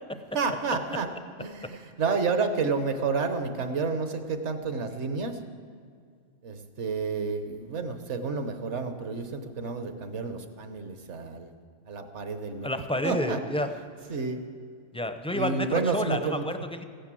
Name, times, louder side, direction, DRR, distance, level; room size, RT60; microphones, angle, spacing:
voice 1, 0.3-1.1 1.4-5.4 6.4-11.5 11.9-12.7 13.0-13.4 14.1-14.4 15.3-16.5, right 4 dB, 70° right, 8 dB, 1.4 m, -30 dB
voice 2, 12.6-13.7 14.9-16.8, left 1 dB, 5° left, 8 dB, 0.5 m, -30 dB
15.5 x 10.0 x 7.6 m, 2.2 s
omnidirectional pair, 1.3 m